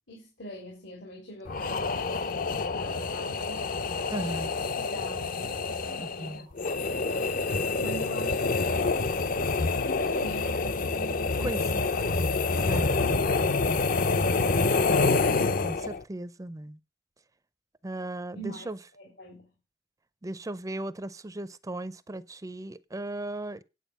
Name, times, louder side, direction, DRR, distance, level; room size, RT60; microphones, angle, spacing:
voice 1, 0.1-7.4 7.8-11.7 12.6-12.9 13.6-15.2 18.3-18.7 19.0-19.5, right 1 dB, 80° left, 4.2 m, -45 dB
sound 1, 1.5-16.0, left 3 dB, 50° left, 0.6 m, -27 dB
voice 2, 4.1-4.5 6.0-6.5 11.4-11.8 12.7-13.2 15.6-16.8 17.8-18.8 20.2-23.6, right 1 dB, 20° right, 0.5 m, -36 dB
9.0 x 8.7 x 5.5 m
head